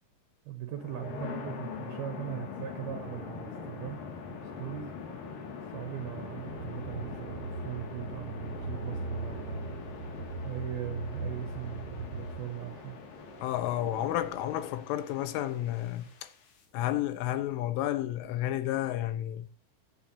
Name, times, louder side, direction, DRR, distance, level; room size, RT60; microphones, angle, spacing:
voice 1, 0.5-4.0 4.6-4.9 5.2-5.4 5.7-9.8 10.4-13.0, right 11 dB, 75° right, 2.3 m, -40 dB
sound 1, 0.7-16.6, left 5 dB, 50° left, 3.3 m, -43 dB
sound 2, 2.1-5.2 5.8-10.1 10.8-11.9 12.8-16.1 16.8-17.0, right 1 dB, 25° right, 1.8 m, -54 dB
sound 3, 6.5-12.4, right 2 dB, 10° left, 3.7 m, -39 dB
voice 2, 13.4-16.3 16.7-19.5, left 13 dB, 80° left, 3.4 m, -31 dB
14.5 x 9.5 x 2.8 m
omnidirectional pair, 5.8 m